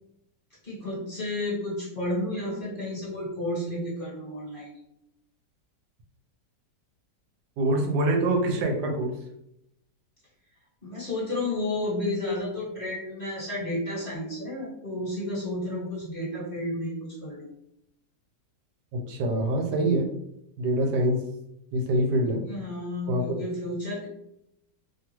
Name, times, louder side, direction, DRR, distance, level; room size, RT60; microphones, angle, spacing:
voice 1, 0.6-4.7 10.8-17.5 22.3-24.1, left 1 dB, 35° left, -8 dB, 1.4 m, -32 dB
voice 2, 7.6-9.1 19.1-20.1 20.6-21.2 21.7-22.4 23.1-23.4, right 1 dB, 90° right, 2 dB, 1.2 m, -25 dB
2.9 x 2.4 x 2.9 m, 0.79 s
omnidirectional pair, 1.8 m